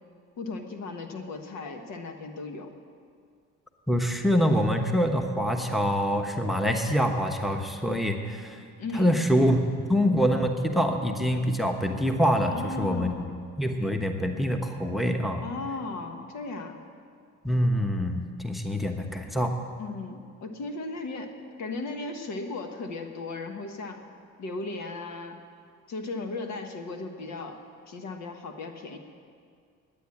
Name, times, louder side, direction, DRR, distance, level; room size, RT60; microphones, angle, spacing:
voice 1, 0.4-2.7 8.8-9.1 12.4-13.4 15.4-16.8 19.8-24.0 24.4-25.4 25.9-29.0, left 3 dB, 65° left, 5 dB, 1.5 m, -36 dB
voice 2, 3.9-8.5 8.9-13.1 13.6-15.4 17.4-19.5, equal, ahead, 5 dB, 1.1 m, -25 dB
10.0 x 9.2 x 9.8 m, 2.2 s
cardioid pair, 85°, 30 cm